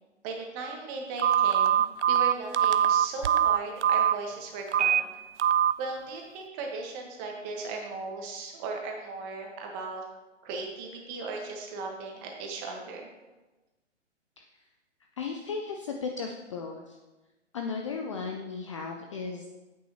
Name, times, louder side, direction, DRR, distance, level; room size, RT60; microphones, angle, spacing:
voice 1, 0.2-5.1 5.8-10.0 10.4-13.1, right 3 dB, 25° right, 1 dB, 1.5 m, -37 dB
Telephone, 1.2-4.1 4.7-5.0 5.4-5.7, right 9 dB, 70° right, 0.6 m, -22 dB
voice 2, 15.2-17.0 17.5-19.5, left 5 dB, 25° left, 3 dB, 0.4 m, -35 dB
9.6 x 8.5 x 3.0 m, 1.1 s
figure-of-eight pair, 130°, 37 cm